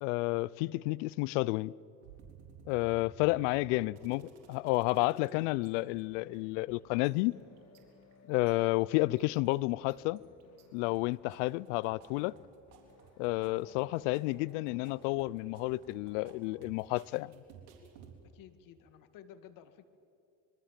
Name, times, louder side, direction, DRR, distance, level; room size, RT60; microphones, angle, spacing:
voice 1, 0.0-1.7 2.7-4.2 4.5-7.3 8.3-10.2 10.7-12.4 13.2-17.3, left 21 dB, 80° left, 0.6 m, -31 dB
sound 1, 2.0-5.3 5.6-5.7 6.0-6.7 7.0-8.5 9.0-9.5 9.9-10.6 10.9-18.1, right 6 dB, 85° right, 3.9 m, -56 dB
voice 2, 3.6-4.0 18.3-19.8, left 9 dB, 60° left, 2.0 m, -53 dB
sound 2, 4.4-16.4, left 5 dB, 45° left, 3.8 m, -61 dB
25.5 x 23.0 x 7.5 m
supercardioid pair, 95°, 36 cm